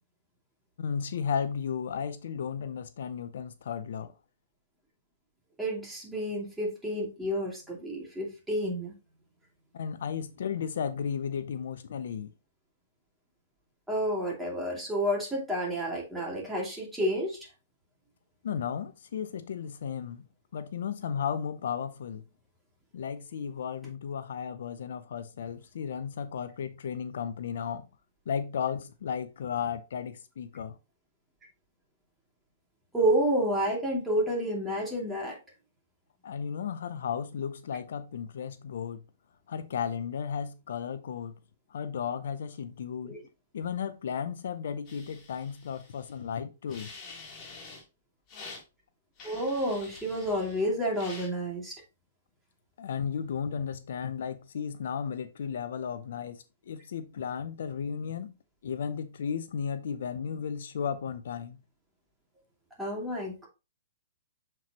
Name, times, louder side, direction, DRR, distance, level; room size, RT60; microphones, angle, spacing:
voice 1, 0.8-4.1 9.7-12.3 18.4-20.2 20.5-22.2 22.9-27.9 28.3-30.8 36.2-39.0 39.5-41.3 41.7-43.2 43.5-46.9 52.8-58.3 58.6-61.6, left 7 dB, 70° left, 0.6 m, -34 dB
voice 2, 5.6-8.9 13.9-17.5 32.9-35.4 43.0-43.2 49.2-51.8 62.8-63.5, equal, 5° right, 2.7 m, -30 dB
sound 1, 44.8-46.2 46.7-47.8 48.3-48.6 49.2-50.6 50.9-51.3, left 4 dB, 30° left, 3.1 m, -47 dB
7.4 x 4.5 x 3.0 m
hypercardioid pair, 130°, 0 cm